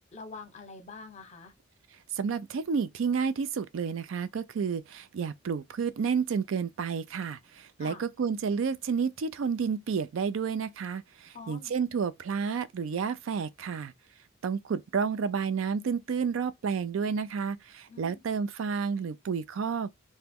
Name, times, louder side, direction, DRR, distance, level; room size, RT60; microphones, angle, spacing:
voice 1, 0.1-1.5 7.8-8.0 11.3-11.7 17.9-18.2, left 4 dB, 35° left, 0.8 m, -45 dB
voice 2, 2.2-13.9 14.4-19.9, right 6 dB, 75° right, 0.4 m, -30 dB
2.9 x 2.1 x 3.5 m
head